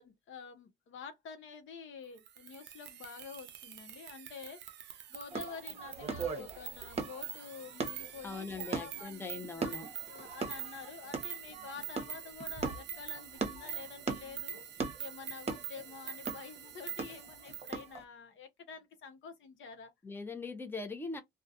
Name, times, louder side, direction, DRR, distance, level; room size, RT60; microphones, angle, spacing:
voice 1, 0.0-19.9, left 5 dB, 75° left, 0.8 m, -49 dB
sound 1, 2.2-17.8, right 10 dB, 60° right, 0.5 m, -46 dB
sound 2, 5.3-18.0, right 4 dB, 30° right, 0.8 m, -40 dB
voice 2, 8.2-9.9 20.0-21.2, left 4 dB, 10° left, 0.6 m, -41 dB
2.3 x 2.2 x 2.7 m
cardioid pair, 90°, 20 cm